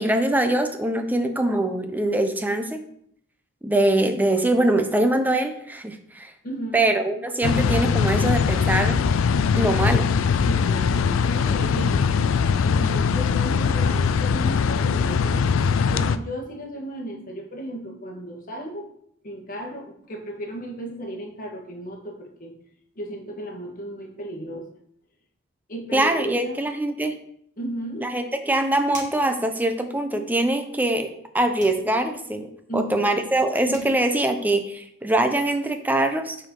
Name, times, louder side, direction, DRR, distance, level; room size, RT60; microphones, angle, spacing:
voice 1, 0.0-2.8 3.6-6.3 6.7-9.0 9.5-10.1 25.9-27.2 28.0-36.4, right 1 dB, 10° right, 6 dB, 0.6 m, -23 dB
voice 2, 6.4-6.8 7.2-7.3 10.4-12.0 12.6-15.5 15.8-18.9 19.2-22.5 22.9-24.7 25.7-26.6 27.6-28.0 32.7-33.1 33.7-34.0, right 1 dB, 40° left, 0 dB, 1.5 m, -34 dB
sound 1, 7.4-16.2, left 6 dB, 65° left, 0.3 m, -21 dB
sound 2, 28.9-29.3 31.6-31.9 33.4-33.5 33.7-34.0, right 2 dB, 35° right, 2.1 m, -40 dB
7.7 x 4.5 x 3.8 m, 0.69 s
head